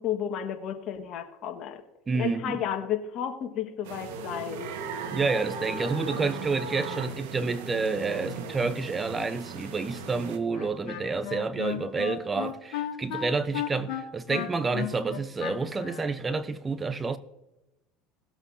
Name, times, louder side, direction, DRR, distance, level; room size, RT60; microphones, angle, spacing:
voice 1, 0.0-1.8 2.2-4.7, left 9 dB, 55° left, 1.7 m, -32 dB
voice 2, 2.1-2.6 5.1-17.2, right 4 dB, 25° right, 0.9 m, -29 dB
sound 1, 3.8-10.4, right 5 dB, 75° right, 1.6 m, -37 dB
Wind instrument woodwind instrument, 10.5-16.1, left 11 dB, 70° left, 2.0 m, -34 dB
19.0 x 8.0 x 2.8 m
hypercardioid pair, 90°, 0 cm